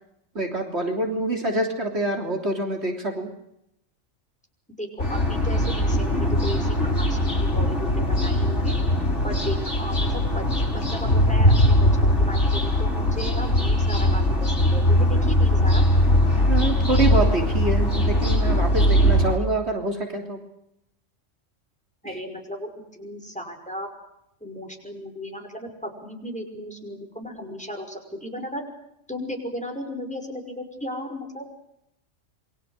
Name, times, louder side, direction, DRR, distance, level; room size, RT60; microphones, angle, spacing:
voice 1, 0.4-3.3 16.4-20.4 22.1-22.2, right 2 dB, 55° right, 2 dB, 3.6 m, -26 dB
voice 2, 4.8-8.8 9.2-11.8 12.0-15.8 22.0-23.9 24.4-28.6 29.1-31.6, equal, 5° left, 3 dB, 5.6 m, -35 dB
sound 1, 5.0-19.4, left 1 dB, 65° left, 6.2 m, -20 dB
28.5 x 23.0 x 6.6 m, 0.80 s
omnidirectional pair, 1.3 m